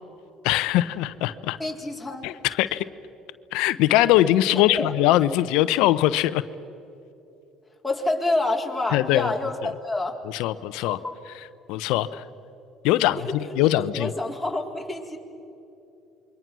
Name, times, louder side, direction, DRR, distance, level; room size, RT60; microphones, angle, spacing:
voice 1, 0.4-1.6 2.2-2.8 3.5-6.4 8.9-9.3 10.3-11.0 11.7-12.3 12.8-14.1, left 14 dB, 75° left, 14 dB, 0.8 m, -21 dB
voice 2, 1.6-2.3 4.7-4.9 7.8-10.1 10.9-11.2 13.1-15.2, left 2 dB, 5° left, -1 dB, 4.2 m, -28 dB
27.5 x 23.0 x 6.2 m, 2.8 s
supercardioid pair, 75°, 0 cm